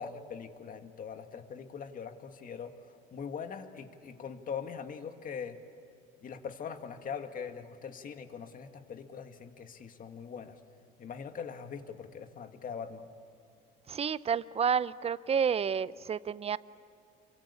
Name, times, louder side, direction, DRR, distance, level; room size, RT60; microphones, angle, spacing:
voice 1, 0.0-2.7 3.1-5.6 6.2-10.6 11.0-13.1, left 6 dB, 40° left, 7 dB, 2.1 m, -42 dB
voice 2, 13.9-16.6, right 7 dB, 30° right, 18 dB, 0.7 m, -30 dB
28.5 x 24.0 x 8.6 m, 2.6 s
supercardioid pair, 95°, 21 cm